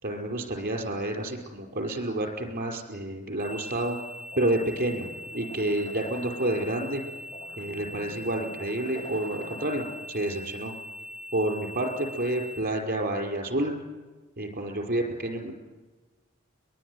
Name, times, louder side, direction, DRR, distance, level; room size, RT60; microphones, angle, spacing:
voice 1, 0.0-4.0 4.3-5.1 5.3-7.0 7.6-10.7 11.3-13.7 14.4-15.5, right 1 dB, 45° right, 2 dB, 5.2 m, -29 dB
sound 1, 3.4-12.6, left 1 dB, 5° right, 4.9 m, -42 dB
sound 2, 4.3-10.3, equal, 25° left, 2.2 m, -47 dB
22.5 x 22.0 x 9.7 m, 1.3 s
head